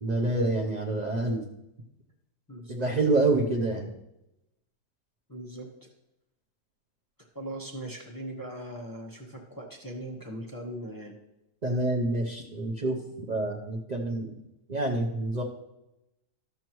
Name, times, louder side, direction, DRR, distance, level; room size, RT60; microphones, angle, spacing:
voice 1, 0.0-1.4 2.7-3.9 11.6-14.4 14.7-15.4, right 2 dB, 35° right, 0 dB, 0.7 m, -27 dB
voice 2, 2.5-2.8 5.3-5.9 7.3-11.1, right 1 dB, 15° left, -1 dB, 1.0 m, -40 dB
13.0 x 6.9 x 3.1 m, 0.89 s
omnidirectional pair, 1.7 m